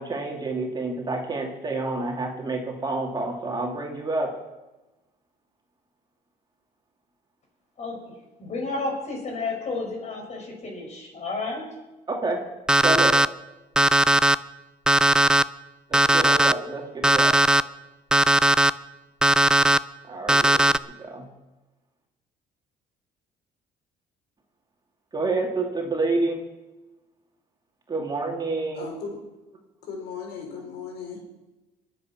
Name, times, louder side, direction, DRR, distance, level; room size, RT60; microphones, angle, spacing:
voice 1, 0.0-4.3 12.1-12.4 12.8-13.2 15.9-17.3 20.0-20.7 21.0-21.3 25.1-26.4 27.9-28.9, right 3 dB, 25° right, 2.6 m, -28 dB
voice 2, 8.4-11.6, left 3 dB, 40° left, 5.9 m, -31 dB
Alarm, 12.7-13.3 13.8-14.3 14.9-15.4 15.9-16.5 17.0-17.6 18.1-18.7 19.2-19.8 20.3-20.8, right 1 dB, 5° right, 0.4 m, -18 dB
voice 3, 28.7-29.2 29.8-31.2, left 5 dB, 75° left, 4.8 m, -36 dB
22.5 x 8.1 x 6.0 m
cardioid pair, 110°, 17 cm